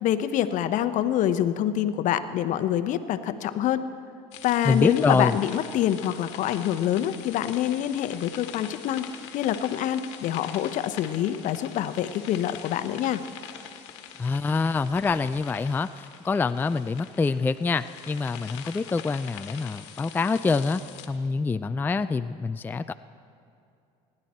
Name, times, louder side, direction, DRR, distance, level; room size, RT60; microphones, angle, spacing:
voice 1, 0.0-3.8 4.4-9.1 9.3-13.2, left 11 dB, 60° left, 11 dB, 0.9 m, -26 dB
sound 1, 4.3-21.1, left 9 dB, 85° left, 1.2 m, -43 dB
voice 2, 4.6-5.4 14.2-20.8 21.1-22.9, left 4 dB, 15° left, 11 dB, 0.3 m, -26 dB
26.0 x 11.0 x 4.3 m, 2.6 s
supercardioid pair, 90°, 15 cm